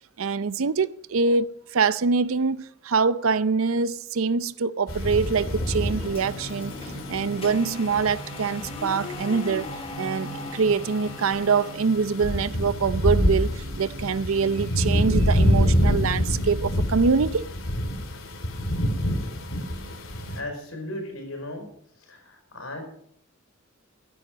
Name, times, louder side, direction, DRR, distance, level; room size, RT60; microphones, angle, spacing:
voice 1, 0.2-6.8 7.1-9.7 10.0-17.5, right 5 dB, 75° right, 0.6 m, -24 dB
sound 1, 4.9-20.4, equal, 70° left, 2.7 m, -27 dB
sound 2, 4.9-11.7, left 2 dB, 30° left, 1.3 m, -39 dB
sound 3, 5.7-16.6, right 1 dB, 45° right, 3.7 m, -42 dB
voice 2, 20.3-21.7 22.0-22.8, left 1 dB, 90° left, 5.0 m, -36 dB
14.5 x 11.0 x 5.1 m
head